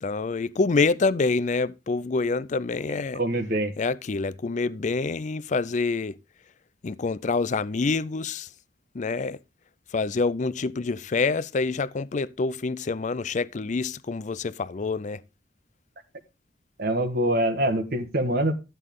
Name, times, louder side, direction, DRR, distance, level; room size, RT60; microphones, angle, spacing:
voice 1, 0.0-3.2 3.8-6.2 6.8-8.5 8.9-9.4 9.9-15.2, left 4 dB, 40° left, 0.5 m, -26 dB
voice 2, 3.1-3.7 16.8-18.5, right 1 dB, 55° right, 1.4 m, -24 dB
12.0 x 8.2 x 3.6 m
head